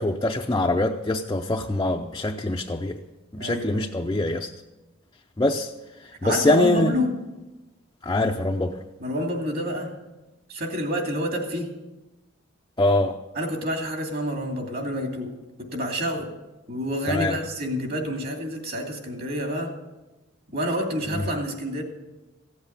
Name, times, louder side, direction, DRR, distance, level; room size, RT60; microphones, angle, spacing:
voice 1, 0.0-3.0 3.3-4.5 5.4-5.7 6.2-6.9 8.0-8.8 12.8-13.2 17.1-17.4 21.1-21.2, left 2 dB, 20° left, 0.5 m, -23 dB
voice 2, 3.4-4.1 6.2-7.1 9.0-9.9 10.5-11.7 13.3-15.3 15.6-16.3 16.7-19.7 20.5-21.8, equal, 50° right, 2.8 m, -28 dB
16.0 x 8.1 x 8.8 m
head